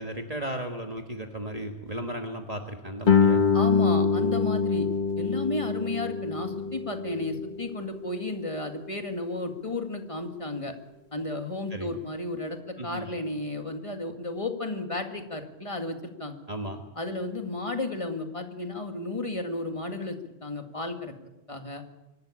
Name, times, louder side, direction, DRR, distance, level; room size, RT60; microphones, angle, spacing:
voice 1, 0.0-3.4 11.7-11.9 12.8-13.1 16.5-16.8, right 1 dB, 35° right, 3 dB, 1.5 m, -35 dB
Guitar, 3.0-8.4, left 5 dB, 45° left, 1.3 m, -25 dB
voice 2, 3.5-4.9 5.2-10.7 11.1-16.4 17.0-21.1 21.5-21.8, left 2 dB, 30° left, 5 dB, 2.1 m, -33 dB
24.5 x 12.5 x 8.7 m, 1.0 s
omnidirectional pair, 1.2 m